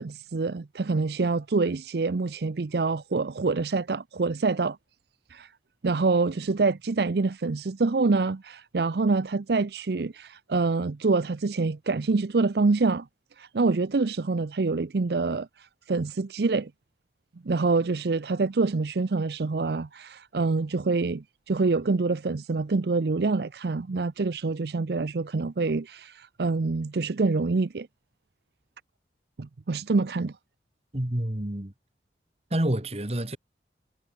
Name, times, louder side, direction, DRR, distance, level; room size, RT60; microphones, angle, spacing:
voice 1, 0.0-4.8 5.3-5.5 5.8-13.1 13.4-16.7 17.4-27.9 29.4-30.3, right 3 dB, 70° right, 0.6 m, -26 dB
voice 2, 30.9-31.7 32.5-33.4, right 1 dB, 35° right, 1.8 m, -28 dB
head